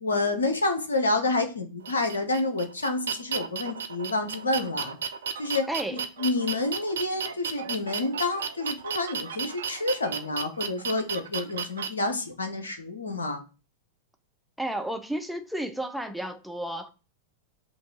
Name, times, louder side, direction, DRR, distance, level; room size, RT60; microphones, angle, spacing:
voice 1, 0.0-5.0 5.4-5.6 5.9-13.4, left 2 dB, 75° left, 0.8 m, -28 dB
sound 1, 1.8-11.9, right 7 dB, 65° right, 0.5 m, -33 dB
voice 2, 5.7-6.0 14.6-16.9, right 1 dB, ahead, 0.7 m, -32 dB
5.1 x 2.7 x 3.7 m
figure-of-eight pair, 90°, 0 cm